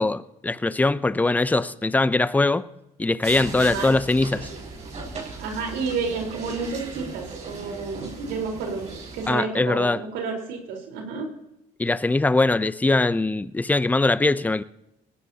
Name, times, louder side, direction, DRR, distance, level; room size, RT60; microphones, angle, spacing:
voice 1, 0.0-2.7 3.0-4.5 9.3-10.0 11.8-14.6, left 2 dB, 10° left, 0.5 m, -22 dB
sound 1, 3.2-9.3, right 3 dB, 45° right, 6.4 m, -37 dB
voice 2, 3.6-3.9 5.4-8.8 9.1-11.3, right 4 dB, 90° right, 4.1 m, -30 dB
19.5 x 16.5 x 2.9 m
cardioid pair, 110°, 17 cm